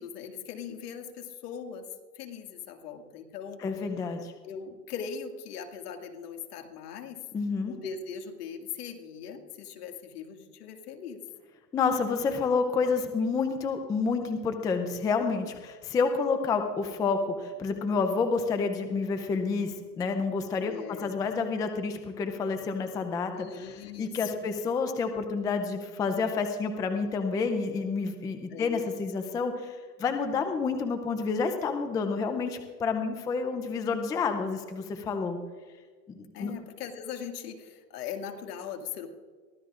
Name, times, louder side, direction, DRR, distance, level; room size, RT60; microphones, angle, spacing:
voice 1, 0.0-1.9 2.2-3.6 4.4-7.2 7.7-11.2 20.6-21.3 23.3-24.5 28.5-28.8 36.3-39.1, left 7 dB, 70° left, 5 dB, 2.2 m, -40 dB
voice 2, 3.6-4.3 7.3-7.7 11.7-20.7 21.0-23.7 24.0-35.4 36.1-36.5, left 4 dB, 10° left, 7 dB, 0.5 m, -29 dB
23.0 x 16.0 x 2.5 m, 1.5 s
hypercardioid pair, 135°, 48 cm